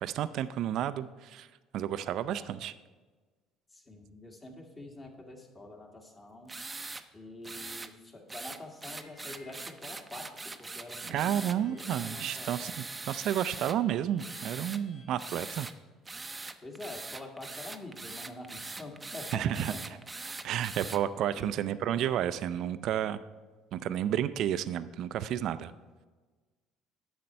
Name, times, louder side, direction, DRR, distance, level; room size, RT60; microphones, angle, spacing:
voice 1, 0.0-1.5 1.7-2.7 11.0-15.7 19.3-20.0 20.2-23.2 23.7-25.7, right 10 dB, 65° right, 14 dB, 0.3 m, -31 dB
voice 2, 3.7-6.5 7.1-10.2 10.6-12.8 16.6-20.0 21.3-21.7, left 2 dB, 30° left, 0 dB, 1.8 m, -46 dB
sound 1, 6.5-7.0 7.4-7.9 8.3-13.8 14.2-14.8 15.2-15.7 16.1-21.0, right 3 dB, 20° right, 0.6 m, -42 dB
Harmonica, 9.0-15.1, left 1 dB, 65° left, 2.3 m, -61 dB
9.4 x 6.5 x 4.4 m, 1.3 s
supercardioid pair, 75°, 0 cm